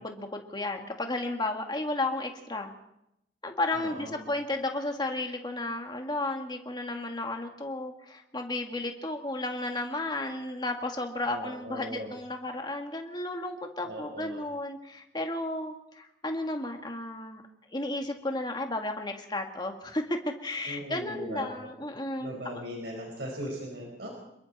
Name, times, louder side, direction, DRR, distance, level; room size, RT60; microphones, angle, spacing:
voice 1, 0.0-2.7 3.4-17.4 17.7-22.4, left 2 dB, 25° left, 4 dB, 2.2 m, -33 dB
voice 2, 3.7-4.2 11.3-12.1 13.8-14.4 20.7-21.7 22.2-24.1, equal, 70° right, 0 dB, 4.9 m, -39 dB
27.5 x 22.0 x 4.3 m, 0.82 s
head